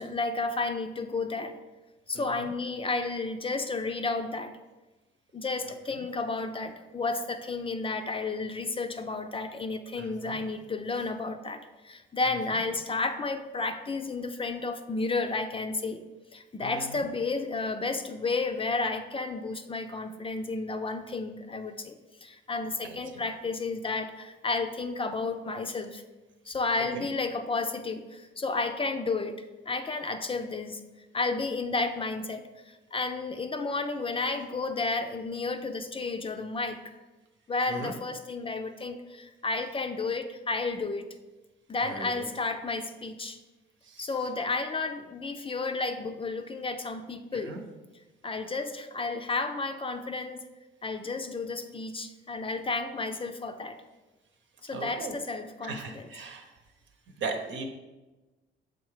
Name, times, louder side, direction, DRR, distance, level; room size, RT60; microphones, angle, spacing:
voice 1, 0.0-1.6 2.1-4.5 5.3-16.0 16.3-26.0 26.5-30.8 31.1-36.8 37.5-41.1 41.7-43.4 44.0-47.6 48.2-50.4 50.8-53.8 54.6-56.1, left 3 dB, 25° left, 7 dB, 0.5 m, -32 dB
voice 2, 10.0-10.4 12.5-12.6 16.6-17.1 22.8-23.2 26.9-27.1 37.7-37.9 41.9-42.3 43.8-44.1 47.4-47.6 54.7-55.1 55.6-56.5 57.2-57.6, right 4 dB, 70° right, 4 dB, 1.0 m, -38 dB
6.4 x 3.8 x 4.8 m, 1.1 s
cardioid pair, 90°, 20 cm